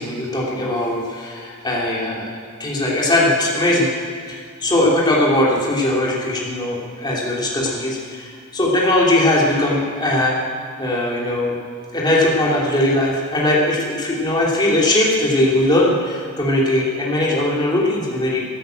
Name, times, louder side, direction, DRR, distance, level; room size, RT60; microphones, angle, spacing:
voice 1, 0.0-2.3 2.6-3.9 4.3-10.4 10.8-11.6 11.9-18.4, left 1 dB, 20° left, -4 dB, 2.7 m, -19 dB
14.0 x 10.5 x 7.7 m, 2.1 s
head